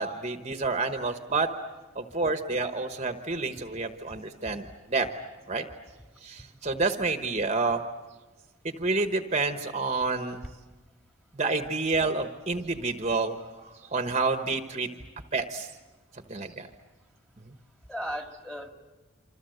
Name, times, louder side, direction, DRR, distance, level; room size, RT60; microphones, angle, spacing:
voice 1, 0.0-1.5 1.9-5.1 5.5-5.6 6.2-7.8 8.6-10.4 11.3-14.9 15.3-15.7 16.3-16.7 17.5-17.6, right 3 dB, 30° right, 7 dB, 1.1 m, -29 dB
voice 2, 14.5-14.9 17.9-18.7, equal, 5° left, 4 dB, 2.0 m, -38 dB
28.0 x 26.0 x 7.9 m, 1.3 s
head